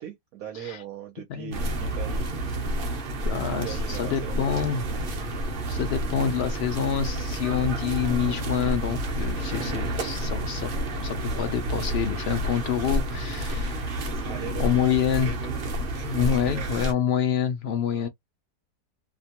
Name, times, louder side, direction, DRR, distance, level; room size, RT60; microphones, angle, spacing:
voice 1, 0.0-2.2 3.4-5.0 14.2-14.9 15.2-15.6 16.5-16.7 17.9-18.1, right 9 dB, 65° right, 1.1 m, -39 dB
sound 1, 1.5-16.9, right 1 dB, 50° right, 0.7 m, -30 dB
voice 2, 3.3-4.8 5.7-10.7 11.0-14.1 14.6-15.3 16.0-18.1, left 8 dB, 90° left, 0.5 m, -27 dB
2.9 x 2.1 x 2.8 m
omnidirectional pair, 1.7 m